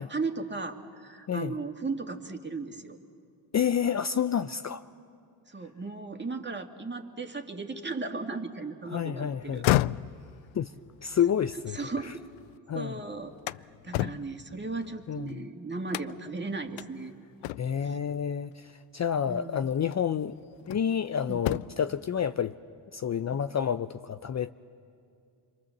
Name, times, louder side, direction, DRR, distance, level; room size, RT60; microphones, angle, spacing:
voice 1, 0.0-3.0 5.5-9.6 11.7-12.2 12.7-13.6 13.8-17.1 17.8-18.0 19.2-19.6 21.3-21.6 23.3-23.4, right 3 dB, 20° right, 2.4 m, -36 dB
voice 2, 3.5-4.8 8.9-9.7 10.5-10.7 11.0-11.8 12.0-12.1 12.7-13.0 15.1-15.4 17.6-20.4 20.7-22.5 22.9-24.5, left 8 dB, 35° left, 0.7 m, -29 dB
sound 1, 9.4-12.6 13.0-15.3 15.9-16.4 16.8-16.9 17.4-17.9 19.2-19.3 19.9-21.0 21.3-21.9, left 16 dB, 70° left, 0.6 m, -32 dB
27.0 x 23.5 x 7.4 m
hypercardioid pair, 45°, 49 cm